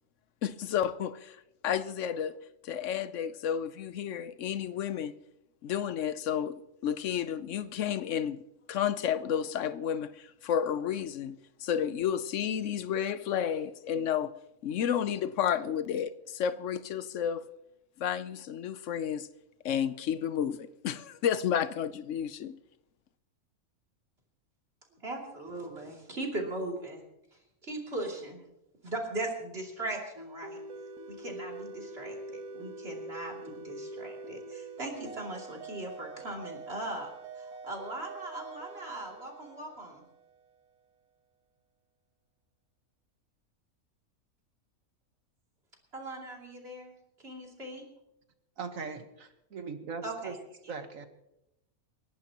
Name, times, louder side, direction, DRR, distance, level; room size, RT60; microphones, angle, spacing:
voice 1, 0.4-2.3 2.6-5.1 5.6-8.4 8.7-14.3 14.6-17.5 18.0-19.3 19.6-22.6, left 9 dB, 65° left, 0.9 m, -31 dB
voice 2, 25.0-27.0 27.6-28.4 28.8-30.6 31.1-37.1 37.4-40.0 45.9-46.9 47.2-47.8 50.0-50.4 50.6-50.7, right 2 dB, 45° right, 3.1 m, -39 dB
sound 1, 30.2-40.5, right 2 dB, 85° right, 1.6 m, -44 dB
voice 3, 48.6-50.4 50.7-51.1, right 5 dB, 65° right, 1.6 m, -40 dB
29.5 x 11.5 x 2.9 m
omnidirectional pair, 1.5 m